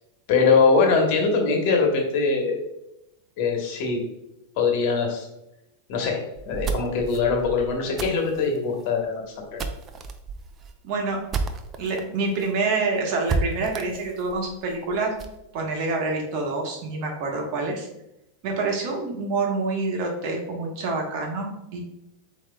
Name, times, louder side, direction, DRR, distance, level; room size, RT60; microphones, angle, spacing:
voice 1, 0.3-2.6 3.4-4.0 4.6-5.3 5.9-6.2 6.5-9.6, left 4 dB, 60° left, 2 dB, 1.2 m, -22 dB
sound 1, 6.3-12.0 12.4-12.5 12.8-12.9 13.3-15.4, right 4 dB, 30° right, 0.5 m, -32 dB
voice 2, 10.8-11.2 11.8-15.1 15.5-17.9 18.4-21.8, right 3 dB, 55° right, 1 dB, 1.2 m, -27 dB
7.6 x 2.9 x 2.3 m, 0.87 s
hypercardioid pair, 115°, 0 cm